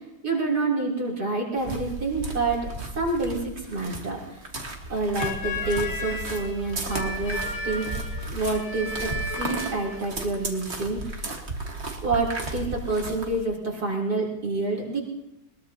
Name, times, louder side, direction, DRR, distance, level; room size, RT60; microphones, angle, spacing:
voice 1, 0.2-2.6 2.9-4.4 4.9-7.9 8.2-11.3 12.0-15.0, right 3 dB, 55° right, -3 dB, 3.8 m, -28 dB
sound 1, 1.6-13.4, right 2 dB, 35° right, 1.8 m, -34 dB
sound 2, 5.2-10.0, left 2 dB, 45° left, 1.8 m, -34 dB
21.0 x 21.0 x 2.8 m, 0.88 s
omnidirectional pair, 2.0 m